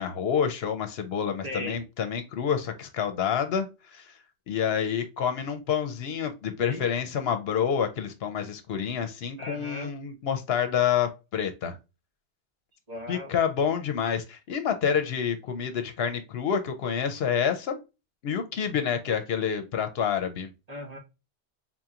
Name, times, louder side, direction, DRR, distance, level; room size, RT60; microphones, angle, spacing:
voice 1, 0.0-11.8 13.1-17.8 18.2-20.5, left 7 dB, 70° left, 0.8 m, -28 dB
voice 2, 1.4-1.8 6.6-6.9 9.4-9.9 12.9-13.4 20.7-21.0, left 1 dB, 40° right, 1.3 m, -37 dB
4.2 x 2.8 x 2.3 m
omnidirectional pair, 1.1 m